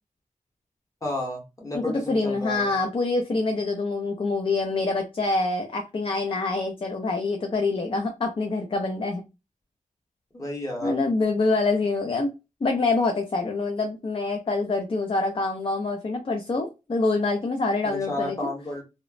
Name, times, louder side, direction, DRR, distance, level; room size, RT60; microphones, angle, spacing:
voice 1, 1.0-2.7 10.3-11.0 17.9-18.8, left 1 dB, 25° left, -1 dB, 1.1 m, -32 dB
voice 2, 1.7-9.2 10.8-12.3 12.6-18.4, left 3 dB, 40° left, 4 dB, 0.4 m, -26 dB
2.9 x 2.0 x 2.4 m, 0.27 s
wide cardioid pair, 100°, 14 cm